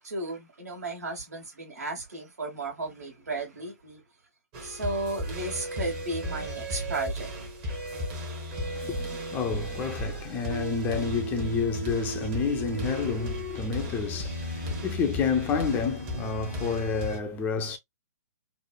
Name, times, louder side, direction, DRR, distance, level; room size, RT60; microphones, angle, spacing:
voice 1, 0.0-4.0 4.6-7.3 14.5-14.9, right 2 dB, 70° right, 1.5 m, -34 dB
sound 1, 4.5-17.2, equal, 35° right, 1.0 m, -34 dB
voice 2, 8.6-17.8, left 5 dB, 20° left, 0.4 m, -30 dB
3.1 x 2.0 x 2.3 m
figure-of-eight pair, 120°, 9 cm